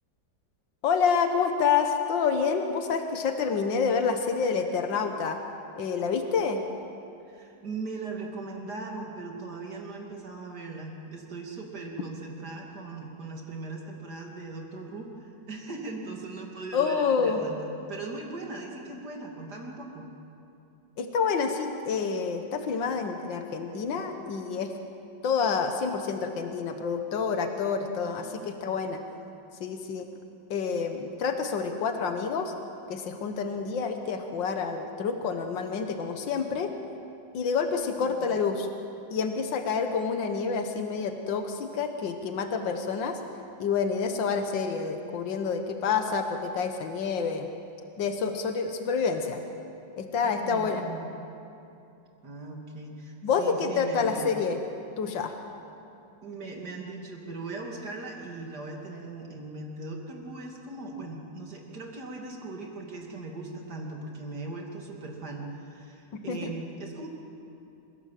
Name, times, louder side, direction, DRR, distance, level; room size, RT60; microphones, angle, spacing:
voice 1, 0.8-5.4 5.8-6.6 16.7-17.4 21.0-24.7 25.2-29.0 29.6-30.1 30.5-32.5 32.9-36.7 37.3-38.7 39.1-43.2 43.6-47.5 48.0-49.4 50.0-50.8 53.2-54.6 55.0-55.4 66.3-66.5, left 5 dB, 85° left, 6 dB, 1.9 m, -28 dB
voice 2, 7.3-20.1 28.0-28.8 38.0-38.4 50.2-51.1 52.2-54.3 56.2-67.1, right 3 dB, 60° right, 0 dB, 3.4 m, -39 dB
27.5 x 17.0 x 7.6 m, 2.7 s
omnidirectional pair, 2.0 m